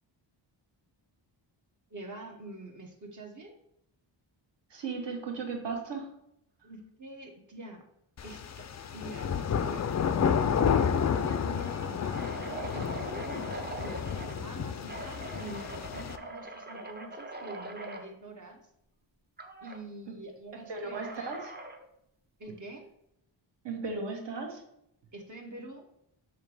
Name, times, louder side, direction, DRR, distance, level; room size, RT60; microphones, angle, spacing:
voice 1, 1.9-3.5 6.6-7.8 8.2-9.9 10.7-18.6 19.6-21.4 22.4-22.9 25.1-25.9, right 2 dB, 40° right, 1 dB, 1.0 m, -46 dB
voice 2, 4.7-6.1 20.7-21.4 23.6-24.6, right 4 dB, 60° right, 2 dB, 1.4 m, -36 dB
sound 1, 8.2-16.2, left 7 dB, 40° left, 0.4 m, -30 dB
sound 2, 11.2-14.4 14.9-18.1 19.4-19.8 20.9-21.9, right 2 dB, 20° right, 0.7 m, -42 dB
6.6 x 3.0 x 4.8 m, 0.77 s
wide cardioid pair, 105°, 48 cm